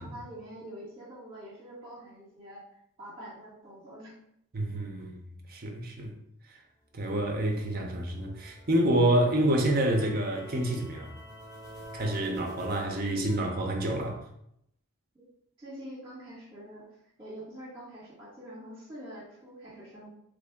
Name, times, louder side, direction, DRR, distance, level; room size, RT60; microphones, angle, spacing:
voice 1, 0.0-2.6 3.0-4.1 6.9-7.0 15.6-16.8 17.2-20.1, equal, 25° right, 1.5 m, -45 dB
voice 2, 4.5-5.2 5.5-6.1 6.9-11.1 11.9-14.2, right 1 dB, 40° right, 0.6 m, -28 dB
sound 1, 6.9-13.4, equal, ahead, 1.4 m, -49 dB
3.1 x 2.6 x 3.5 m
head